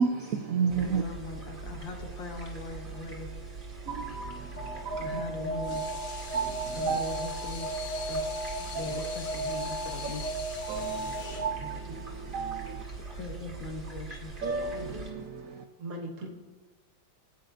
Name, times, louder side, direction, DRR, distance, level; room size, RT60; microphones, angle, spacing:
voice 1, 0.0-1.0 3.9-5.2 6.3-7.0 8.7-9.0 10.7-12.8 14.4-15.6, right 6 dB, 75° right, 0.7 m, -32 dB
voice 2, 0.6-3.3 5.0-5.9 6.7-7.7 8.1-8.2 8.6-10.2 13.2-14.3, left 3 dB, 80° left, 1.7 m, -40 dB
sound 1, 0.7-15.1, right 3 dB, 30° right, 1.9 m, -42 dB
Alarm, 4.6-11.6, right 2 dB, 30° left, 0.7 m, -35 dB
Water tap faucet / Sink (filling or washing), 5.4-13.5, left 5 dB, 50° left, 1.4 m, -44 dB
voice 3, 11.6-12.0 14.4-15.3 15.8-16.3, right 2 dB, 50° right, 1.9 m, -41 dB
15.5 x 8.9 x 2.6 m
omnidirectional pair, 2.1 m